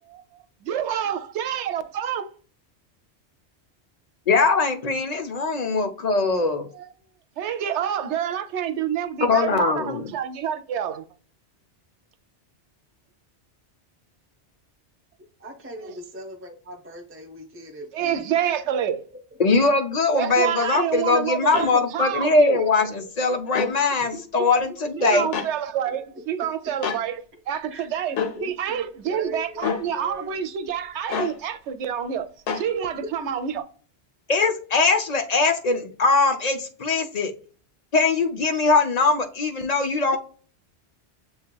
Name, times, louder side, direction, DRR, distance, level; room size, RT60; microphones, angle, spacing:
voice 1, 0.1-2.3 6.7-6.9 7.4-11.0 15.8-15.9 17.9-19.1 20.1-22.6 23.0-23.1 25.0-32.3 32.5-33.6, right 9 dB, 85° right, 0.9 m, -28 dB
voice 2, 4.3-6.7 9.2-10.1 19.4-25.3 34.3-37.3 37.9-40.2, left 3 dB, 40° left, 0.7 m, -21 dB
voice 3, 15.4-18.3 24.1-25.2 25.9-26.0 27.6-27.9 28.3-30.4 33.1-33.2, equal, 15° right, 0.7 m, -39 dB
sound 1, 21.5-21.7 23.5-23.7 25.3-25.5 26.8-27.0 28.2-28.4 29.6-29.8 31.1-31.4 32.5-32.7, left 6 dB, 80° left, 1.1 m, -27 dB
7.0 x 2.8 x 2.2 m
omnidirectional pair, 1.2 m